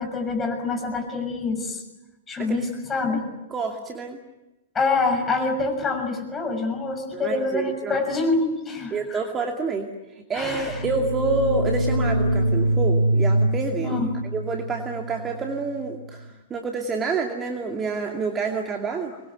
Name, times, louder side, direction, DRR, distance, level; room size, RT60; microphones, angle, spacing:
voice 1, 0.0-1.8 2.3-3.2 4.7-9.2 10.3-10.8 13.8-14.1, left 3 dB, 15° left, 3 dB, 6.5 m, -26 dB
voice 2, 3.5-4.2 7.1-8.0 8.9-9.9 10.3-14.0 14.3-19.1, right 4 dB, 20° right, 2 dB, 2.4 m, -28 dB
sound 1, 10.5-16.1, right 1 dB, 75° left, 3.7 m, -24 dB
25.0 x 21.5 x 9.5 m, 1.0 s
figure-of-eight pair, 105°, 0 cm